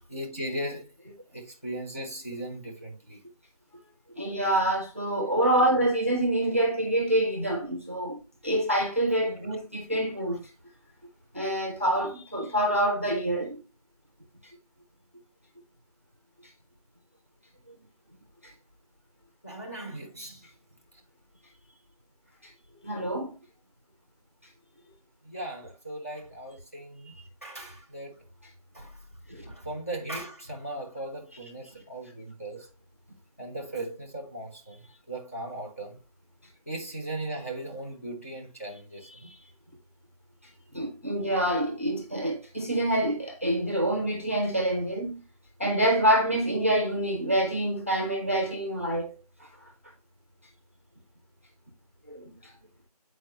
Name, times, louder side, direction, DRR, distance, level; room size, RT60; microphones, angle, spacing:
voice 1, 0.1-0.9 1.3-3.2 19.4-20.4 25.2-27.1 27.4-28.2 28.7-29.0 29.4-32.7 33.4-36.0 36.7-39.3, right 1 dB, 20° left, 0.7 m, -38 dB
voice 2, 4.2-10.4 11.3-13.6 22.8-23.4 29.3-29.4 39.2-39.4 40.7-45.2 45.6-49.2 52.1-52.3, right 1 dB, 20° right, 0.7 m, -26 dB
8.0 x 4.4 x 2.8 m
figure-of-eight pair, 175°, 21 cm